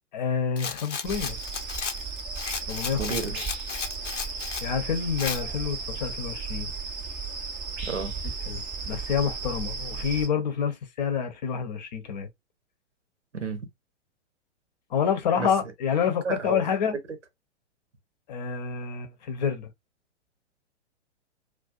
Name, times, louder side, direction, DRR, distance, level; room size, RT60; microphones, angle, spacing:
voice 1, 0.1-1.4 2.7-3.4 4.6-6.7 8.5-12.3 14.9-16.9 18.3-19.7, left 7 dB, 40° left, 0.6 m, -28 dB
Rattle, 0.6-4.7 5.2-5.4, left 6 dB, 85° left, 0.6 m, -34 dB
sound 1, 1.0-10.3, right 5 dB, 15° right, 0.5 m, -35 dB
voice 2, 2.9-3.3 7.8-8.1 13.3-13.6 15.3-15.5 16.1-16.6, right 5 dB, 75° right, 0.9 m, -31 dB
2.4 x 2.3 x 2.4 m
figure-of-eight pair, 110°, 36 cm